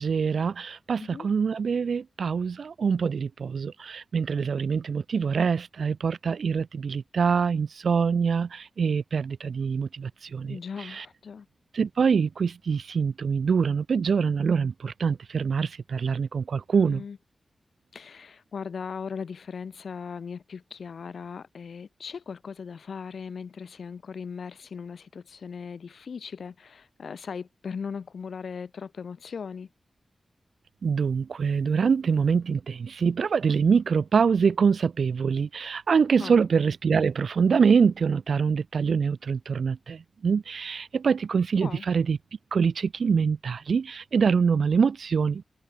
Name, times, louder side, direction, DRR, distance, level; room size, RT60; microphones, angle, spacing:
voice 1, 0.0-11.1 11.7-17.0 30.8-42.2 42.5-45.4, right 6 dB, 75° right, 0.4 m, -25 dB
voice 2, 10.4-11.5 16.8-17.2 17.9-29.7 36.2-36.4 41.6-41.8, left 6 dB, 80° left, 0.4 m, -38 dB
wide cardioid pair, 145°, 0 cm